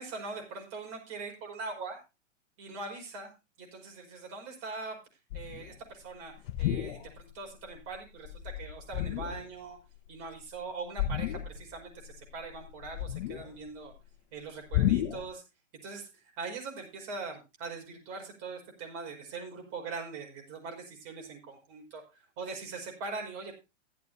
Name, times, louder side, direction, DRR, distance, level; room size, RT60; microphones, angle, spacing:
voice 1, 0.0-2.0 2.6-3.3 3.6-5.0 5.3-6.3 6.6-9.8 10.1-13.9 14.3-15.4 15.8-16.1 16.4-22.0 22.4-23.5, right 4 dB, 40° right, 1 dB, 5.5 m, -41 dB
sound 1, 5.3-5.7 6.4-7.3 7.7-8.0 8.2-9.5 11.0-11.8 12.0-13.7 14.7-15.3, left 12 dB, 55° left, 1.3 m, -32 dB
15.5 x 12.0 x 2.7 m, 0.27 s
hypercardioid pair, 130°, 38 cm